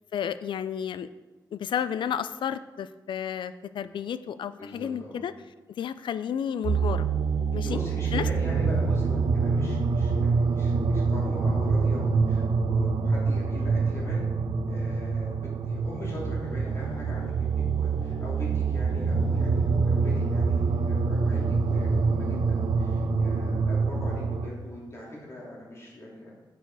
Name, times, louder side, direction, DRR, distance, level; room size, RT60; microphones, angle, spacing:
voice 1, 0.1-1.1 1.5-5.3 5.8-7.1 7.5-7.8 8.1-8.2, left 8 dB, 80° left, 14 dB, 0.4 m, -31 dB
voice 2, 4.6-5.2 7.6-14.3 14.7-26.3, left 1 dB, 35° left, -5 dB, 3.0 m, -41 dB
sound 1, 6.6-24.5, right 4 dB, 65° right, 0.7 m, -25 dB
9.1 x 6.9 x 4.7 m, 1.2 s
wide cardioid pair, 165°, 8 cm